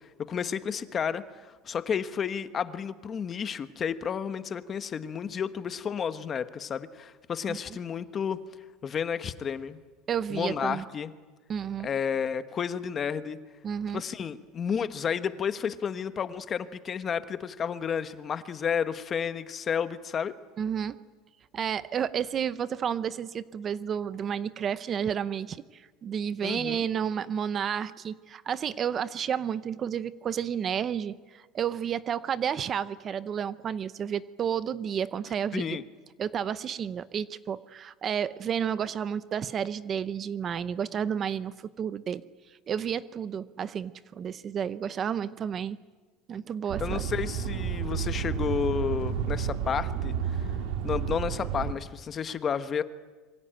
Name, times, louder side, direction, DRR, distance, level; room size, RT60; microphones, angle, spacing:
voice 1, 0.3-8.4 8.8-9.8 10.3-11.1 11.8-13.4 13.9-20.3 26.4-26.8 35.5-35.8 46.8-50.5 50.8-52.8, left 7 dB, 25° left, 11 dB, 1.2 m, -31 dB
voice 2, 10.1-10.8 11.5-11.9 13.6-14.0 20.6-21.0 21.5-35.8 36.2-42.2 42.7-45.8 46.3-47.1, right 8 dB, 30° right, 15 dB, 0.7 m, -31 dB
sound 1, 46.7-51.7, right 8 dB, 70° right, 2.9 m, -31 dB
27.5 x 23.5 x 9.0 m, 1.4 s
cardioid pair, 155°, 0 cm